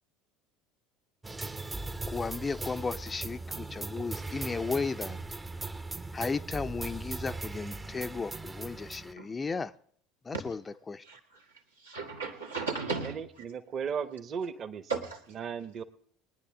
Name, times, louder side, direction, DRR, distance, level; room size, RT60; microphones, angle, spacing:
sound 1, 1.2-9.1, right 2 dB, 15° right, 0.7 m, -39 dB
voice 1, 2.1-5.2 6.1-9.7 10.2-10.6 10.9-11.0, left 4 dB, 20° left, 0.6 m, -34 dB
voice 2, 11.0-11.5 11.8-13.2 14.9-15.2, right 4 dB, 80° right, 1.8 m, -35 dB
voice 3, 13.0-14.9 15.3-15.8, right 6 dB, 40° right, 1.1 m, -36 dB
21.5 x 10.0 x 3.7 m
figure-of-eight pair, 65°, 0 cm